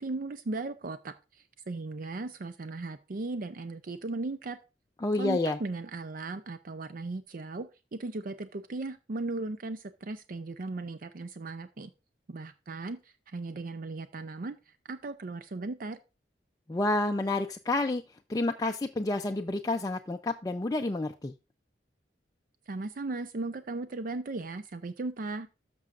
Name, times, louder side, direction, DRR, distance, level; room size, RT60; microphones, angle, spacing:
voice 1, 0.0-4.6 5.2-11.9 12.3-13.0 13.3-14.6 14.8-16.0 22.7-25.5, right 3 dB, 50° right, 11 dB, 0.5 m, -37 dB
voice 2, 5.0-5.6 16.7-18.0 18.3-21.3, left 2 dB, 20° left, 4 dB, 0.4 m, -29 dB
13.0 x 6.2 x 2.5 m, 0.28 s
head